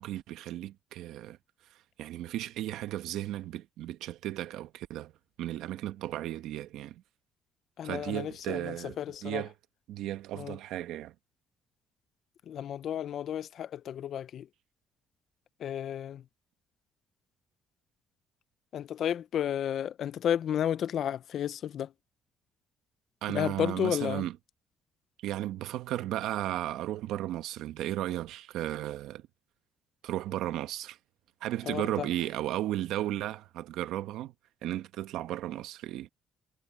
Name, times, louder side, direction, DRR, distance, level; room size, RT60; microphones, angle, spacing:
voice 1, 0.0-1.4 2.0-5.1 5.4-7.0 7.8-9.0 9.2-9.5 9.9-11.1 23.2-24.3 25.2-29.3 30.0-31.0 31.4-34.3 34.6-36.1, right 13 dB, 85° right, 1.1 m, -34 dB
voice 2, 7.8-9.4 10.3-10.6 12.5-14.5 15.6-16.2 18.7-21.9 23.3-24.3 31.7-32.1, left 10 dB, 60° left, 0.6 m, -32 dB
cardioid pair, 115°, 0 cm